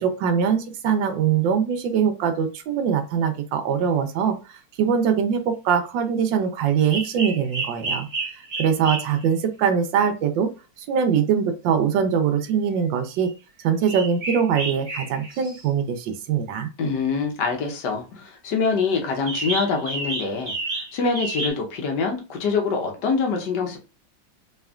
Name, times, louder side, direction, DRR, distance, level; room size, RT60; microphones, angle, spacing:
voice 1, 0.0-8.1 8.3-10.5 10.8-13.3 13.6-16.7, right 7 dB, 70° right, 1.2 m, -22 dB
sound 1, 6.9-9.3 12.4-12.5 13.1-13.3 13.6-15.7 19.3-21.5, right 3 dB, 85° right, 0.4 m, -30 dB
voice 2, 16.8-20.5 20.9-23.8, left 4 dB, 60° left, 1.4 m, -25 dB
4.2 x 3.2 x 2.3 m
omnidirectional pair, 2.3 m